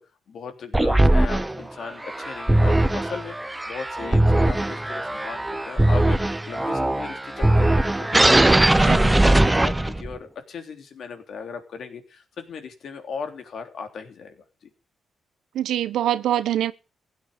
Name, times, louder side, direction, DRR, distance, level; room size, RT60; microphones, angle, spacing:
voice 1, 0.3-14.7, left 6 dB, 65° left, 3.4 m, -37 dB
sound 1, 0.7-10.2, right 1 dB, 10° right, 0.8 m, -20 dB
voice 2, 8.8-9.1 15.5-16.7, right 12 dB, 90° right, 0.9 m, -24 dB
16.0 x 9.2 x 6.6 m
cardioid pair, 105°, 0 cm